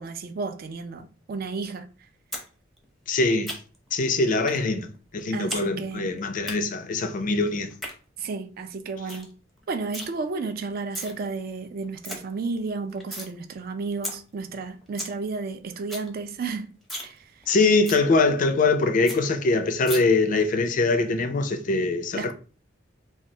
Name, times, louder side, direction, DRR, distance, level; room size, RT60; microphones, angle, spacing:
voice 1, 0.0-1.9 5.3-6.2 8.2-9.3 9.7-16.7 17.0-17.6 22.1-22.3, right 4 dB, 50° right, 0.4 m, -32 dB
sound 1, 2.3-2.5 2.8-3.9 4.5-4.6 4.9-5.6 5.9-6.5 7.6-7.9 8.4-8.5 8.8-8.9 9.1-9.3 9.6-10.1 10.7-11.1 11.5-11.6 11.8-12.2 12.6-13.3 13.7-13.8 14.0-14.1 14.5-14.6 14.8-15.1 15.5-15.6 15.8-16.1 16.4-16.5 16.8-17.1 17.4-17.5 17.9-18.0 18.4-18.5 18.7-18.8 19.1-19.2 19.9-20.0, equal, ahead, 0.6 m, -35 dB
voice 2, 3.1-3.6 3.9-7.7 17.5-22.3, left 3 dB, 45° left, 0.4 m, -23 dB
3.2 x 2.3 x 2.7 m
head